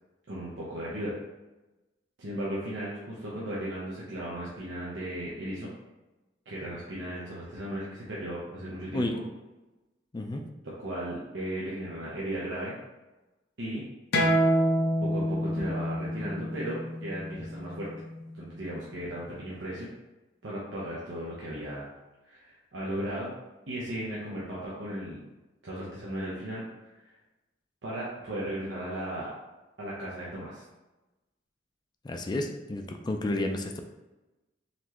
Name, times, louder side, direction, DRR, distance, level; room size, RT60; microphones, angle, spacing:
voice 1, 0.3-1.2 2.2-5.7 6.5-9.2 10.6-12.8 13.6-13.8 15.0-17.9 18.3-19.9 20.4-21.9 22.2-23.3 23.7-25.2 25.6-26.6 27.8-29.3 29.8-30.6, right 1 dB, 90° right, -7 dB, 0.9 m, -36 dB
voice 2, 8.9-9.2 10.1-10.4 32.0-33.8, left 1 dB, 25° left, 5 dB, 0.4 m, -31 dB
sound 1, 14.1-19.3, equal, 60° left, 0.7 m, -28 dB
4.2 x 3.2 x 2.9 m, 1.1 s
head